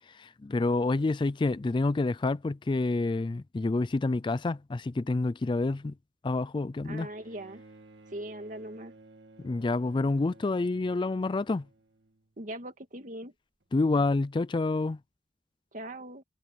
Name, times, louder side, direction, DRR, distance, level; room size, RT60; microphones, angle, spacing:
voice 1, 0.1-5.9 6.2-7.1 9.4-11.7 13.7-15.0, left 3 dB, 25° left, 0.4 m, -28 dB
voice 2, 6.8-7.6 8.1-8.9 12.4-13.3 15.7-16.2, right 1 dB, 45° right, 2.1 m, -40 dB
Bowed string instrument, 7.0-12.5 13.6-13.7, right 2 dB, 75° right, 2.1 m, -55 dB
head